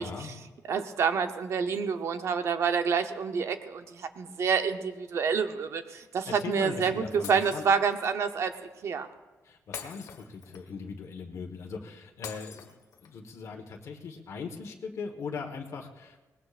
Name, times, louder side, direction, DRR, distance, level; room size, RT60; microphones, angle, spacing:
voice 1, 0.0-0.5 6.3-7.6 9.4-12.7 13.0-16.2, left 5 dB, 55° left, 2 dB, 1.4 m, -39 dB
voice 2, 0.7-8.5 8.8-9.1, right 6 dB, 55° right, 8 dB, 0.8 m, -28 dB
Shatter, 7.2-8.1 9.7-10.8 12.2-13.2, left 7 dB, 85° left, 1.7 m, -44 dB
22.5 x 19.5 x 2.5 m, 1.2 s
wide cardioid pair, 175°, 6 cm